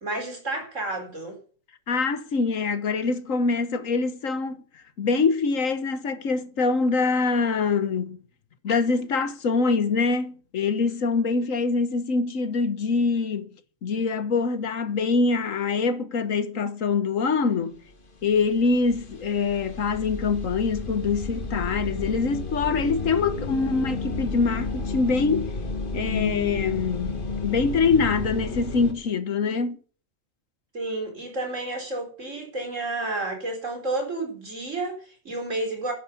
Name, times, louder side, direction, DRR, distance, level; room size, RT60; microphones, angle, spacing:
voice 1, 0.0-1.4 30.7-35.9, right 2 dB, 70° right, 4.5 m, -31 dB
voice 2, 1.9-8.2 8.6-13.5 13.8-17.8 18.2-25.5 25.9-29.8, left 4 dB, 75° left, 1.6 m, -24 dB
sound 1, 17.9-18.0 18.2-28.9, left 3 dB, 40° left, 1.7 m, -31 dB
12.0 x 10.5 x 7.0 m
omnidirectional pair, 1.4 m